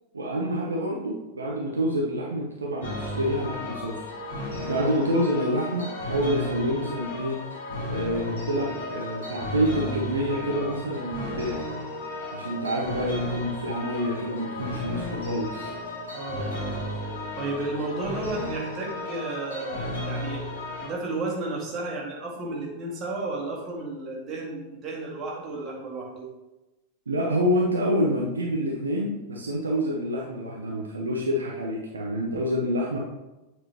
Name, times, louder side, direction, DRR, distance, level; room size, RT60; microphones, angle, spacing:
voice 1, 0.1-4.1 4.7-7.4 7.9-11.5 12.3-15.7 27.1-33.0, equal, 75° right, -2 dB, 0.9 m, -27 dB
sound 1, 2.8-20.9, left 1 dB, 60° left, 2.2 m, -34 dB
voice 2, 16.1-16.8 17.3-20.4 20.8-26.3, right 2 dB, 30° right, -2 dB, 2.1 m, -33 dB
8.2 x 4.8 x 3.0 m, 1.0 s
figure-of-eight pair, 90°, 0 cm